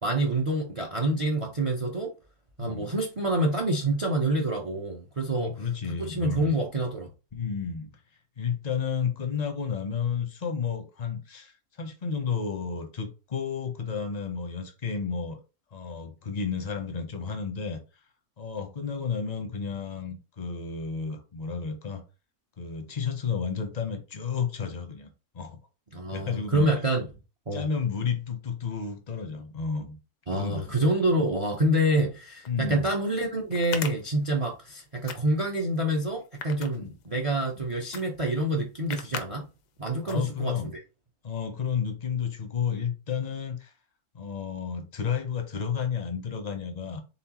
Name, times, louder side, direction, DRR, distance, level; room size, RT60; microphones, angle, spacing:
voice 1, 0.0-2.1 2.6-5.5 5.9-7.1 25.9-27.1 27.5-27.7 30.3-39.5 39.8-40.7, right 1 dB, 50° right, 0.4 m, -27 dB
voice 2, 5.3-6.5 7.3-7.9 8.4-15.4 15.7-17.8 18.4-22.0 22.6-25.1 25.3-25.6 26.1-26.7 27.5-30.0 30.3-30.7 32.5-32.9 36.7-36.9 37.5-37.6 40.0-40.7 41.2-43.7 44.1-47.0, left 6 dB, 45° left, 0.5 m, -32 dB
sound 1, 32.4-32.5 33.5-34.7 35.0-35.6 36.2-37.3 37.9-38.0 38.3-38.4 38.9-39.3 39.6-39.8 40.1-40.6, left 7 dB, 90° left, 1.2 m, -37 dB
4.2 x 3.7 x 2.9 m
omnidirectional pair, 1.7 m